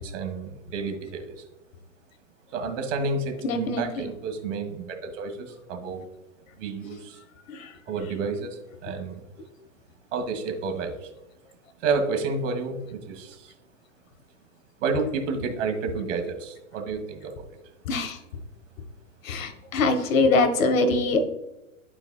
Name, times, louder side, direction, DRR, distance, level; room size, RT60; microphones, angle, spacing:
voice 1, 0.0-1.4 2.5-6.1 6.6-7.2 7.9-9.2 10.1-11.1 11.8-13.5 14.8-17.5, right 4 dB, 55° right, 5 dB, 1.9 m, -30 dB
voice 2, 3.4-4.0 7.5-7.7 17.9-18.2 19.2-21.2, left 3 dB, 60° left, 8 dB, 1.5 m, -23 dB
12.5 x 4.7 x 2.4 m, 0.97 s
hypercardioid pair, 140°, 44 cm